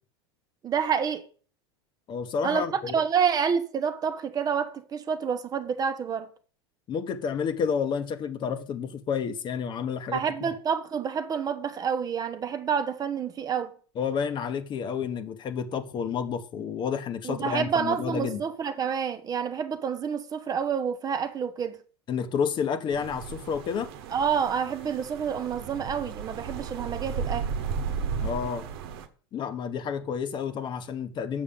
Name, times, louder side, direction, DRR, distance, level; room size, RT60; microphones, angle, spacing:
voice 1, 0.6-1.2 2.4-6.3 10.1-13.7 17.2-21.8 24.1-27.5, right 7 dB, 30° right, 0.9 m, -28 dB
voice 2, 2.1-3.0 6.9-10.5 14.0-18.4 22.1-23.9 28.2-28.7 29.3-31.4, left 6 dB, 35° left, 1.1 m, -30 dB
sound 1, 22.9-29.1, right 6 dB, 70° right, 1.1 m, -34 dB
7.2 x 6.3 x 5.3 m
hypercardioid pair, 95°, 13 cm